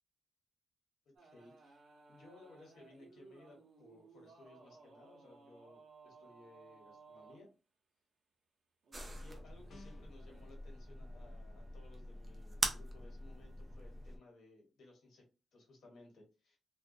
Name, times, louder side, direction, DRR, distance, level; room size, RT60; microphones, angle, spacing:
voice 1, 1.0-1.8 2.1-7.5 9.2-15.2 15.5-16.6, left 2 dB, 75° left, 0 dB, 1.3 m, -60 dB
sound 1, 1.2-7.4 8.8-10.5, right 4 dB, 65° right, 0.7 m, -60 dB
sound 2, 8.9-14.2, right 1 dB, 25° right, 0.4 m, -43 dB
sound 3, 9.7-10.2, left 2 dB, 50° left, 0.7 m, -56 dB
2.4 x 2.2 x 2.5 m, 0.33 s
cardioid pair, 120°, 0 cm